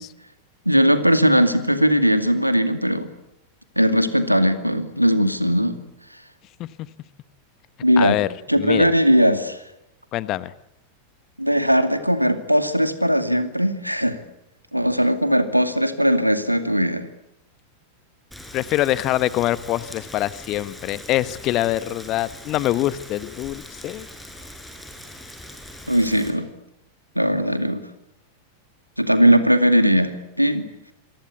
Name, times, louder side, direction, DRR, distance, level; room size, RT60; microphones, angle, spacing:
voice 1, 0.7-3.1 3.8-5.8 7.8-8.2 8.5-9.6 11.4-14.2 14.7-17.1 25.9-26.5 27.2-27.9 29.0-30.7, equal, 90° right, 9 dB, 2.4 m, -19 dB
voice 2, 8.0-8.3 8.6-8.9 10.1-10.5 18.5-24.1, left 15 dB, 35° left, 16 dB, 1.2 m, -24 dB
Rain, 18.3-26.3, left 1 dB, 5° left, 6.1 m, -41 dB
27.0 x 23.5 x 8.4 m, 0.87 s
figure-of-eight pair, 90°, 0 cm